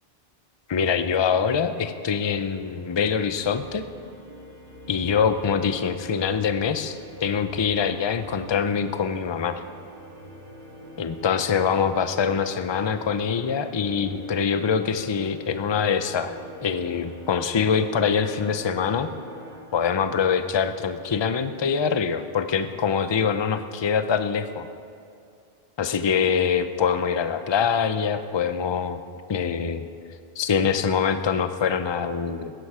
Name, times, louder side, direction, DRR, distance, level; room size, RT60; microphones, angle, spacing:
voice 1, 0.7-3.9 4.9-9.6 11.0-16.4 16.6-19.1 19.7-24.7 25.8-29.0 29.3-29.9 30.4-32.5, left 6 dB, 35° left, 10 dB, 0.4 m, -24 dB
sound 1, 1.7-19.6, equal, 50° right, 3.0 m, -44 dB
16.0 x 13.0 x 4.9 m, 2.4 s
omnidirectional pair, 1.2 m